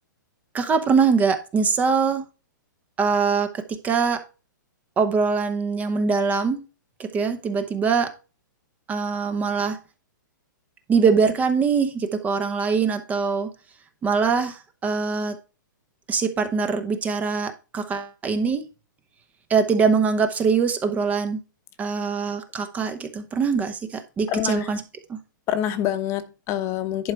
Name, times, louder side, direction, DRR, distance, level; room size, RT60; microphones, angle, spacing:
voice 1, 0.5-2.2 3.0-4.2 5.0-6.6 7.0-8.1 8.9-9.8 10.9-13.5 14.0-15.4 16.1-18.6 19.5-21.4 21.8-24.8 25.1-25.2, right 5 dB, 15° right, 0.8 m, -23 dB
voice 2, 24.3-24.7 25.5-27.1, left 11 dB, 25° left, 1.0 m, -26 dB
11.0 x 4.9 x 4.5 m
hypercardioid pair, 150°, 11 cm